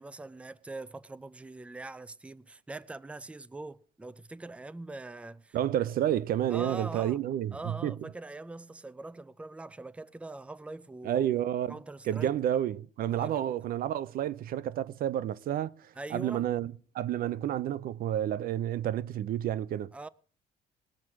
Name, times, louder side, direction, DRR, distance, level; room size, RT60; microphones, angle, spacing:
voice 1, 0.0-5.6 6.5-7.2 7.5-11.3 11.7-12.3 13.1-13.6 16.0-16.5 19.9-20.1, right 2 dB, 5° right, 0.5 m, -43 dB
voice 2, 5.5-8.1 11.0-11.8 12.1-19.9, right 11 dB, 60° right, 0.6 m, -30 dB
20.0 x 7.3 x 4.7 m
cardioid pair, 110°, 17 cm